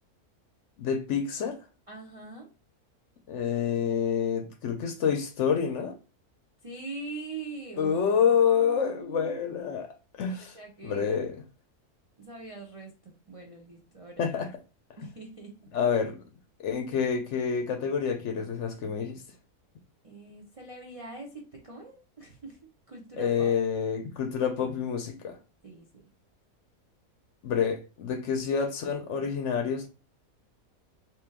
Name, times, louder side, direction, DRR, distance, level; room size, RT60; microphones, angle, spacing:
voice 1, 0.8-1.6 3.3-5.9 7.8-9.9 10.2-10.6 10.8-11.4 14.2-14.5 15.7-16.2 16.6-19.2 23.2-25.4 27.4-29.9, left 7 dB, 65° left, 0.8 m, -27 dB
voice 2, 1.9-2.5 6.6-9.4 10.5-11.1 12.2-14.3 15.0-15.6 20.0-23.5 25.6-26.0, right 3 dB, 55° right, 0.3 m, -43 dB
2.9 x 2.9 x 3.5 m
omnidirectional pair, 1.6 m